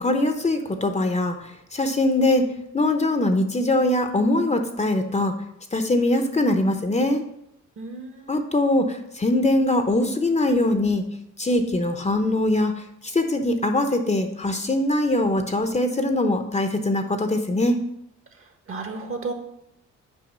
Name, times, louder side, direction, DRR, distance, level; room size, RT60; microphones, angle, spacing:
voice 1, 0.0-1.4 1.7-2.4 2.7-5.3 5.7-7.2 8.3-11.0 11.4-17.8, left 1 dB, 25° left, 6 dB, 0.9 m, -22 dB
voice 2, 7.8-8.5 18.7-19.3, right 3 dB, 45° right, 5 dB, 1.4 m, -33 dB
6.2 x 4.9 x 6.1 m, 0.80 s
cardioid pair, 80°, 30 cm